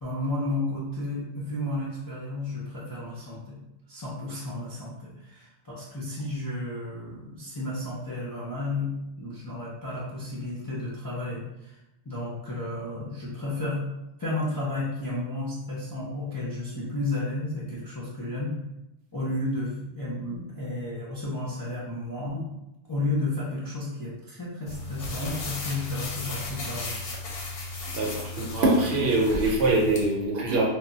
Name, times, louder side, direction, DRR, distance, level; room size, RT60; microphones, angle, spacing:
voice 1, 0.0-3.6 3.9-8.9 9.2-11.8 12.0-13.8 14.2-18.5 19.1-22.5 22.9-27.0, left 2 dB, 30° left, -8 dB, 0.4 m, -32 dB
sound 1, 24.7-30.0, left 2 dB, 65° left, 0.7 m, -35 dB
voice 2, 27.9-30.6, right 2 dB, 60° right, -2 dB, 0.8 m, -23 dB
2.2 x 2.0 x 3.8 m, 0.92 s
omnidirectional pair, 1.2 m